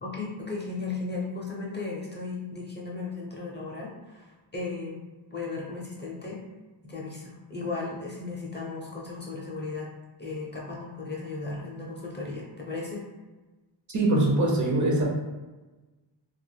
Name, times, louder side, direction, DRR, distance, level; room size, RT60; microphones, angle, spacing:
voice 1, 0.0-6.4 6.8-9.9 10.2-13.0, left 3 dB, 25° left, -3 dB, 0.5 m, -36 dB
voice 2, 13.9-15.0, right 2 dB, 40° right, -2 dB, 0.6 m, -23 dB
2.3 x 2.0 x 3.1 m, 1.2 s
wide cardioid pair, 85°, 46 cm